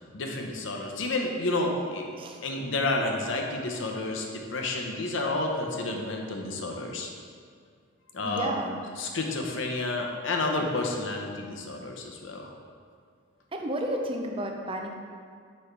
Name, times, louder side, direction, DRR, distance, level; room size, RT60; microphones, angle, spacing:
voice 1, 0.1-2.1 2.4-7.1 8.1-8.5 9.0-12.5, left 2 dB, 65° left, 1 dB, 0.8 m, -30 dB
voice 2, 8.2-8.8 13.5-14.9, right 1 dB, 25° right, 2 dB, 0.5 m, -32 dB
6.4 x 5.3 x 3.3 m, 2.1 s
head